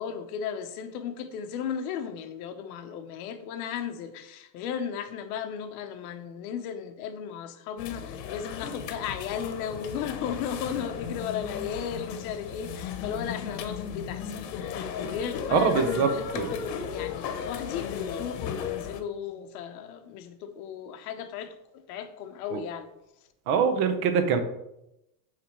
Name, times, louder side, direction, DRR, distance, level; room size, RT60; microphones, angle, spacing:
voice 1, 0.0-22.9, left 8 dB, 65° left, 0.9 m, -35 dB
sound 1, 7.8-19.0, left 7 dB, 90° left, 1.0 m, -35 dB
voice 2, 15.5-16.5 22.5-22.6 23.5-24.4, right 6 dB, 55° right, 1.0 m, -24 dB
8.6 x 3.4 x 4.5 m
supercardioid pair, 165°, 49 cm